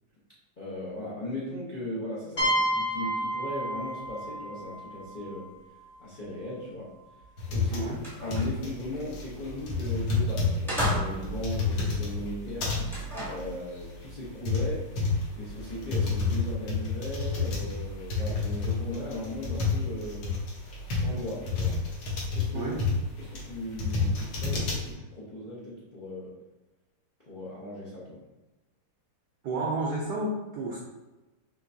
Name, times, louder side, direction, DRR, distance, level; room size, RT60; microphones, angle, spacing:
voice 1, 0.6-5.5 6.0-6.9 7.5-7.9 8.1-12.7 13.2-20.3 20.9-21.8 22.3-22.7 23.2-26.4 27.3-28.2, left 1 dB, 80° left, -8 dB, 0.4 m, -37 dB
sound 1, 2.4-6.0, right 1 dB, 45° left, 1.2 m, -31 dB
sound 2, 7.4-24.9, left 4 dB, 65° left, 1.4 m, -30 dB
sound 3, 7.5-7.6 7.9-8.7 9.9-10.1 10.7-11.5 12.8-13.5, equal, ahead, 0.5 m, -33 dB
voice 2, 7.7-8.0 22.5-22.8 29.4-30.8, right 2 dB, 70° right, -4 dB, 1.0 m, -31 dB
4.6 x 3.2 x 2.6 m, 1.1 s
omnidirectional pair, 2.4 m